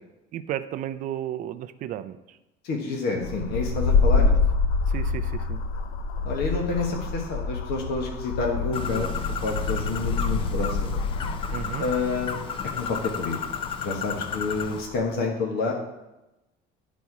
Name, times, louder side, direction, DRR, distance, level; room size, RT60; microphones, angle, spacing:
voice 1, 0.3-2.2 4.2-4.3 4.9-5.6 11.5-11.8, right 11 dB, 45° right, 12 dB, 0.4 m, -33 dB
voice 2, 2.6-4.4 6.2-11.0 11.8-12.4 12.8-13.4 13.8-15.7, left 3 dB, 55° left, 0 dB, 1.3 m, -29 dB
sound 1, 3.2-15.1, left 4 dB, 85° left, 0.7 m, -27 dB
Bird, 8.7-14.8, left 7 dB, 30° left, 0.4 m, -33 dB
10.5 x 4.2 x 4.8 m, 0.96 s
cardioid pair, 170°, 20 cm